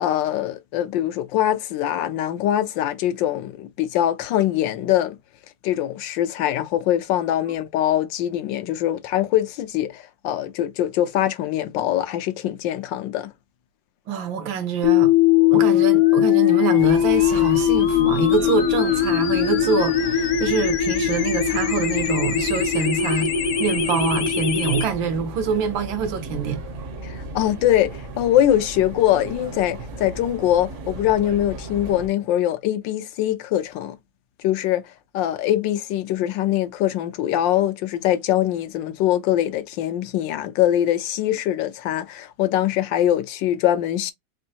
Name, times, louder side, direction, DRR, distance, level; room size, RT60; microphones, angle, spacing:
voice 1, 0.0-5.2 5.6-13.3 27.0-34.0 34.4-34.8 35.1-44.1, left 12 dB, 75° left, 1.3 m, -23 dB
voice 2, 14.1-15.1 15.5-23.3 23.6-26.6, right 5 dB, 80° right, 1.6 m, -25 dB
sound 1, 14.8-24.8, left 10 dB, 60° left, 1.1 m, -20 dB
sound 2, 16.8-32.1, right 2 dB, 55° right, 0.9 m, -35 dB
4.3 x 2.5 x 2.8 m
omnidirectional pair, 2.1 m